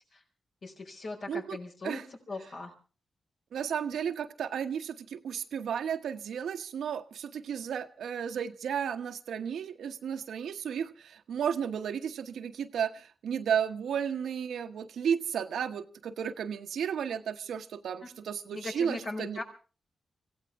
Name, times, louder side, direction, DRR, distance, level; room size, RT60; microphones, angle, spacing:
voice 1, 0.6-2.0 2.3-2.7 18.5-19.4, left 2 dB, 65° left, 1 dB, 5.2 m, -39 dB
voice 2, 1.3-1.6 1.8-2.1 3.5-19.4, right 8 dB, 90° right, 8 dB, 1.0 m, -33 dB
25.0 x 16.0 x 3.6 m, 0.36 s
cardioid pair, 70°, 0 cm